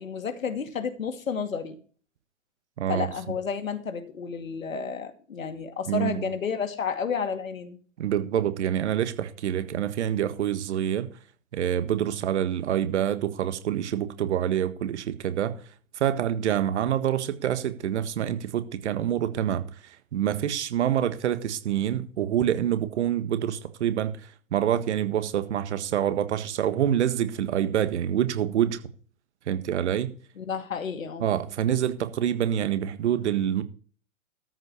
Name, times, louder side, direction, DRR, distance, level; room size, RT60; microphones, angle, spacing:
voice 1, 0.0-1.8 2.9-7.8 30.4-31.2, left 6 dB, 70° left, 2.4 m, -31 dB
voice 2, 2.8-3.1 5.9-6.2 8.0-11.1 11.5-15.6 15.9-24.2 24.5-28.8 29.5-30.1 31.2-33.6, right 10 dB, 55° right, 1.7 m, -26 dB
13.5 x 5.6 x 6.9 m
figure-of-eight pair, 115°, 42 cm